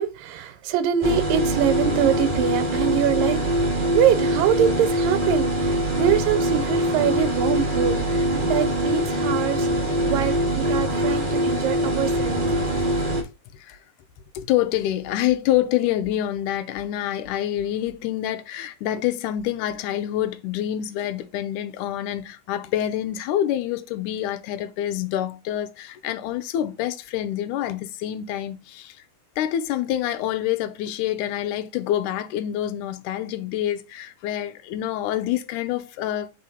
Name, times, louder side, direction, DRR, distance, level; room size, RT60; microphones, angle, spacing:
voice 1, 0.0-12.5, right 10 dB, 85° right, 2.5 m, -24 dB
sound 1, 1.0-13.2, right 1 dB, 30° right, 0.9 m, -23 dB
voice 2, 14.4-29.0 29.4-36.3, left 12 dB, 80° left, 2.0 m, -26 dB
5.1 x 4.2 x 5.5 m
omnidirectional pair, 4.0 m